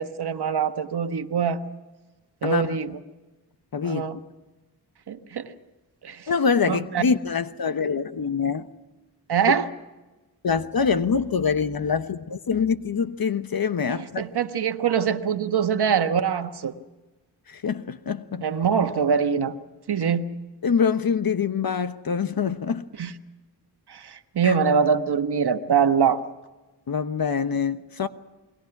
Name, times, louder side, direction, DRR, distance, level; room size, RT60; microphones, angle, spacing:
voice 1, 0.0-1.6 2.4-3.0 3.8-4.2 5.1-5.5 6.0-6.3 6.7-7.0 9.3-9.7 13.9-16.7 18.4-19.6 19.9-20.2 23.0-23.1 23.9-26.2, right 7 dB, 70° right, 1.4 m, -23 dB
voice 2, 2.4-2.8 3.7-4.1 6.3-8.7 10.4-14.2 17.5-18.4 20.6-22.9 24.4-24.6 26.9-28.1, left 6 dB, 60° left, 1.1 m, -25 dB
28.5 x 21.0 x 6.0 m
cardioid pair, 65°, 41 cm